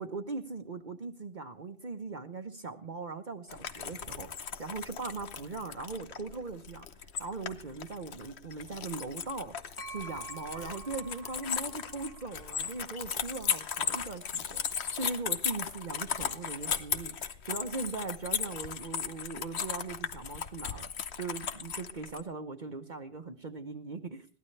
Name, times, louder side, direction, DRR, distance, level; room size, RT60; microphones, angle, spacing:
voice 1, 0.0-24.3, right 3 dB, 50° right, 6 dB, 1.1 m, -40 dB
sound 1, 3.5-22.2, left 7 dB, 85° left, 1.2 m, -37 dB
sound 2, 9.8-13.5, right 4 dB, 15° right, 1.4 m, -49 dB
21.5 x 16.5 x 3.3 m, 0.38 s
omnidirectional pair, 1.1 m